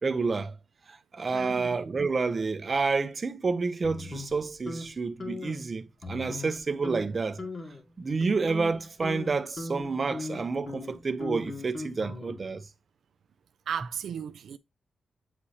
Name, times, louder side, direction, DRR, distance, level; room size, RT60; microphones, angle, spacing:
voice 1, 0.0-0.5 0.9-7.4 8.0-12.6, right 4 dB, 35° right, 0.7 m, -29 dB
voice 2, 1.3-1.8 13.7-14.6, right 8 dB, 75° right, 0.4 m, -35 dB
sound 1, 3.8-4.9 5.2-5.6 6.0-6.6 6.8-7.0 7.4-7.8 8.2-12.6, left 3 dB, 45° left, 2.2 m, -39 dB
8.2 x 4.8 x 2.8 m
wide cardioid pair, 120°, 0 cm